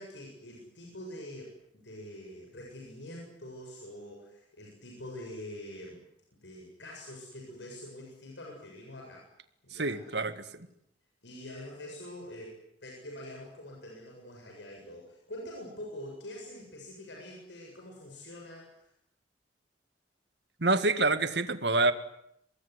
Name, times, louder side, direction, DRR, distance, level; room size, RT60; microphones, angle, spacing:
voice 1, 0.0-6.0 6.4-9.3 9.6-10.2 11.2-18.9, left 1 dB, 90° left, -1 dB, 7.6 m, -45 dB
voice 2, 9.7-10.3 20.6-21.9, right 3 dB, 70° right, 11 dB, 1.9 m, -26 dB
24.5 x 21.5 x 9.9 m, 0.74 s
head